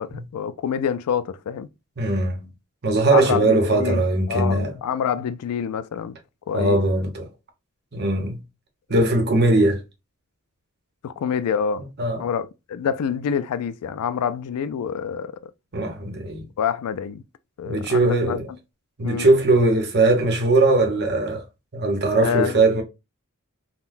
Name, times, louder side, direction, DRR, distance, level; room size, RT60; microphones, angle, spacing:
voice 1, 0.0-1.7 3.1-4.0 4.3-6.2 6.5-6.8 11.0-11.9 12.2-15.5 16.6-17.2 17.6-18.4 19.0-19.3 22.2-22.7, left 7 dB, 90° left, 0.3 m, -27 dB
voice 2, 2.0-2.5 2.8-4.7 6.5-7.3 7.9-8.4 8.9-9.8 12.0-12.3 15.7-16.4 17.7-18.4 19.0-21.4 21.7-22.8, right 2 dB, 50° right, 0.8 m, -20 dB
3.7 x 2.1 x 2.5 m
head